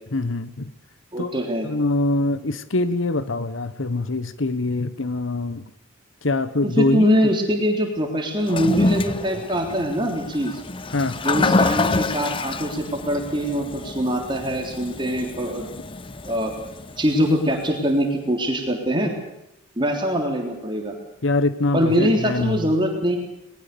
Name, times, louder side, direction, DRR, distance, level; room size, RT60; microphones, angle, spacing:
voice 1, 0.1-0.7 1.2-1.4 1.6-5.7 6.2-7.1 10.9-11.2 21.2-22.6, left 2 dB, 70° left, 13 dB, 1.1 m, -24 dB
voice 2, 1.1-1.7 6.6-10.6 11.2-15.7 16.2-16.5 17.0-19.1 19.8-20.9 21.7-23.2, equal, 25° right, 2 dB, 3.6 m, -23 dB
Toilet flush, 8.4-17.7, left 3 dB, 25° left, 0.7 m, -27 dB
21.5 x 20.5 x 6.9 m, 0.88 s
head